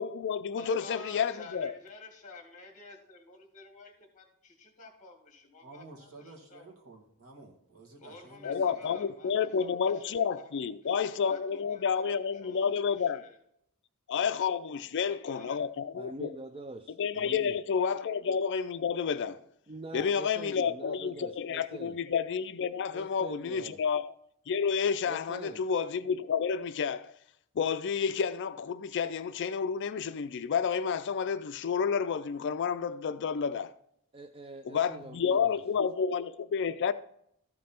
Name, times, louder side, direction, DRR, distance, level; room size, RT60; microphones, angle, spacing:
voice 1, 0.0-1.7 8.4-13.2 14.1-16.3 17.0-19.4 19.9-24.1 24.5-27.1 27.6-33.7 34.7-36.9, left 6 dB, 55° left, 0.4 m, -30 dB
voice 2, 0.6-6.6 8.0-10.5 10.9-13.4 15.0-15.6 17.8-17.9, left 3 dB, 35° left, 2.1 m, -50 dB
voice 3, 5.6-8.6, right 2 dB, 70° right, 2.1 m, -52 dB
voice 4, 15.9-17.6 19.7-22.0 22.9-23.8 25.1-25.6 34.1-35.6, right 2 dB, 25° right, 0.4 m, -44 dB
13.5 x 5.3 x 4.3 m
head